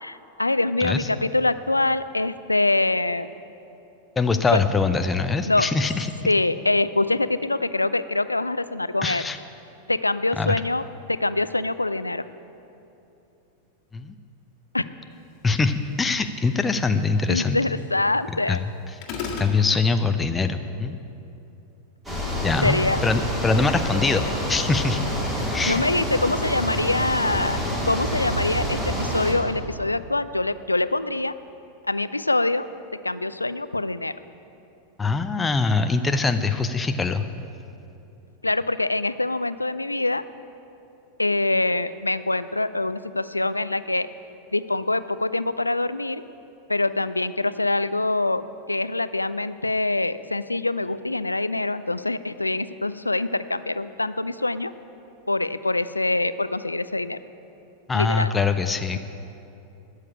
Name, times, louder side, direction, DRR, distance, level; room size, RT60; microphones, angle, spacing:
voice 1, 0.0-3.3 4.5-4.6 5.4-5.7 6.2-9.3 9.9-12.3 14.7-14.9 17.3-18.6 22.6-23.0 25.7-27.6 27.8-31.3 31.9-32.7 32.9-34.1 38.4-40.2 41.2-44.1 44.5-46.2 46.7-54.7 55.3-57.2 57.9-58.3, left 2 dB, 85° left, 14 dB, 0.3 m, -24 dB
voice 2, 4.2-6.1 9.0-9.4 10.4-10.5 13.9-14.1 15.4-17.6 18.5-18.6 19.4-21.0 22.4-22.8 23.0-25.0 25.5-25.8 35.0-37.2 57.9-59.0, left 4 dB, 15° left, 8 dB, 0.5 m, -23 dB
sound 1, 19.0-19.6, left 5 dB, 40° left, 1.8 m, -30 dB
sound 2, 22.0-29.3, equal, 10° right, 3.4 m, -27 dB
13.0 x 6.6 x 8.6 m, 2.8 s
figure-of-eight pair, 90°, 0 cm